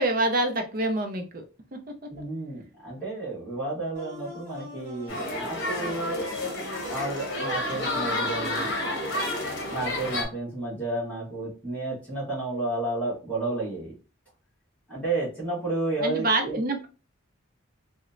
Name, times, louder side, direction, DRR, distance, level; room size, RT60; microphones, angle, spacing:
voice 1, 0.0-1.4 1.7-1.8 16.0-16.9, right 2 dB, 45° right, 5 dB, 0.5 m, -26 dB
voice 2, 2.1-6.2 6.9-8.7 9.7-13.9 14.9-16.6, right 2 dB, 10° left, -9 dB, 1.2 m, -31 dB
sound 1, 3.9-9.9, equal, 10° right, 1.3 m, -42 dB
sound 2, 5.1-10.2, left 1 dB, 55° left, 0.8 m, -30 dB
3.0 x 2.1 x 2.4 m, 0.34 s
head